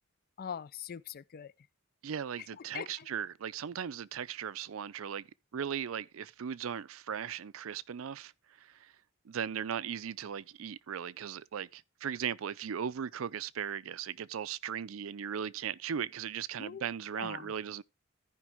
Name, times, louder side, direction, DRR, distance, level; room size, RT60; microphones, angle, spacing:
voice 1, 0.4-1.5 2.7-3.1 16.6-16.9 17.2-17.5, left 7 dB, 45° left, 0.4 m, -42 dB
voice 2, 2.0-5.3 5.5-8.3 8.6-8.9 9.3-17.8, right 8 dB, 75° right, 0.4 m, -38 dB
14.0 x 5.2 x 3.4 m
head